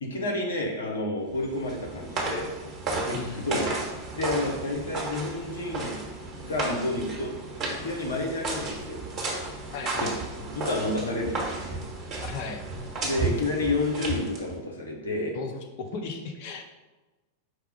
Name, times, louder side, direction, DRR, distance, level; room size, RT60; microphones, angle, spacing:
voice 1, 0.0-2.5 3.1-3.8 4.1-5.9 6.4-7.3 7.7-9.0 10.0-11.8 13.0-15.3, left 2 dB, 70° left, 0 dB, 0.9 m, -30 dB
sound 1, 1.3-14.6, right 3 dB, 25° right, 1.2 m, -33 dB
voice 2, 3.1-3.5 9.7-10.1 12.2-12.7 15.3-16.6, left 4 dB, 50° left, 4 dB, 0.5 m, -36 dB
4.6 x 2.3 x 4.8 m, 1.1 s
figure-of-eight pair, 90°, 0 cm